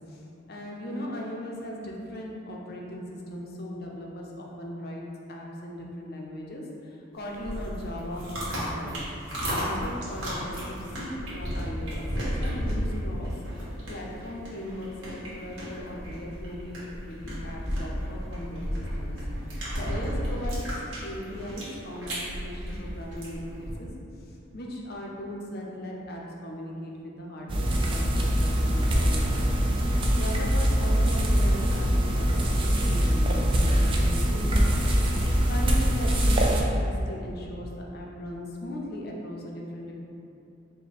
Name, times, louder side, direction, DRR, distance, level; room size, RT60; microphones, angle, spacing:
voice 1, 0.1-12.1 12.4-13.3 13.9-19.2 19.5-23.9 24.3-29.6 29.9-34.8 35.1-39.9, left 1 dB, 50° left, -2 dB, 0.5 m, -38 dB
sound 1, 7.2-23.7, equal, 55° right, 1.3 m, -33 dB
sound 2, 27.5-36.6, equal, 25° right, 0.3 m, -23 dB
4.8 x 2.1 x 4.1 m, 2.7 s
head